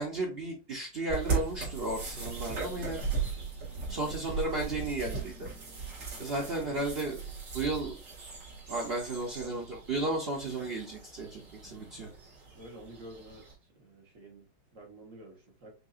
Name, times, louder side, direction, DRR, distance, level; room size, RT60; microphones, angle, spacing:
voice 1, 0.0-3.0 3.9-5.5 6.2-7.2 7.5-8.0 8.7-12.1, right 2 dB, 85° right, -1 dB, 0.5 m, -34 dB
sound 1, 1.1-13.5, right 4 dB, 60° right, 2.6 m, -38 dB
voice 2, 6.0-6.8 12.5-13.5 13.7-15.7, right 1 dB, 45° right, -1 dB, 1.5 m, -50 dB
6.4 x 2.8 x 2.5 m, 0.31 s
omnidirectional pair, 2.2 m